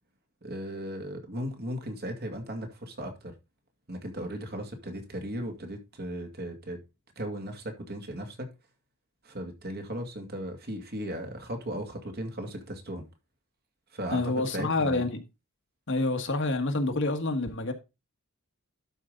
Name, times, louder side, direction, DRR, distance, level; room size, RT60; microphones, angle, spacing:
voice 1, 0.4-3.3 3.9-6.8 7.2-8.5 9.2-13.1 13.9-15.0, equal, 45° right, 2.2 m, -36 dB
voice 2, 14.1-15.2 15.9-17.7, left 2 dB, 55° left, 1.5 m, -27 dB
12.0 x 5.2 x 3.8 m
head